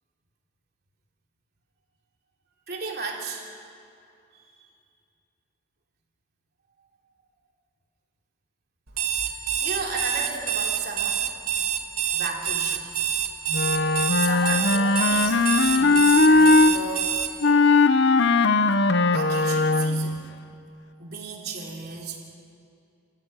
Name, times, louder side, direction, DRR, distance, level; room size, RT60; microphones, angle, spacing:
voice 1, 2.7-3.5 4.3-4.4 9.2-11.2 12.1-13.2 14.2-17.5 19.1-20.3 21.0-22.2, right 4 dB, 45° right, -1 dB, 3.5 m, -34 dB
Alarm, 8.9-17.3, right 9 dB, 85° right, 2.3 m, -26 dB
Wind instrument woodwind instrument, 13.5-16.7 17.4-20.2, left 3 dB, 55° left, 0.8 m, -19 dB
29.5 x 15.0 x 9.4 m, 2.5 s
head